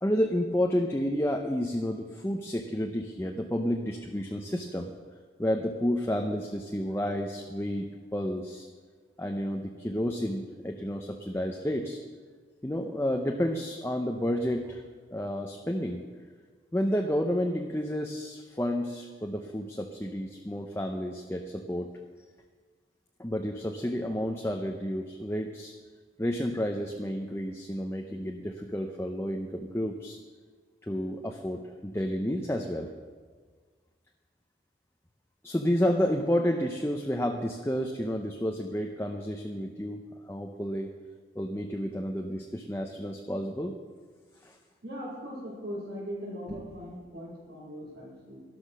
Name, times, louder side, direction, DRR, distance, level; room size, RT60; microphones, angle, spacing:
voice 1, 0.0-4.9 5.4-8.7 9.2-12.0 12.6-14.8 15.1-16.0 16.7-21.9 23.2-25.7 26.2-30.2 30.8-32.9 35.4-41.0 41.3-43.8 44.4-44.6, equal, 15° left, 3 dB, 0.7 m, -30 dB
voice 2, 44.8-48.4, equal, 70° right, -9 dB, 4.6 m, -39 dB
12.0 x 12.0 x 6.3 m, 1.5 s
head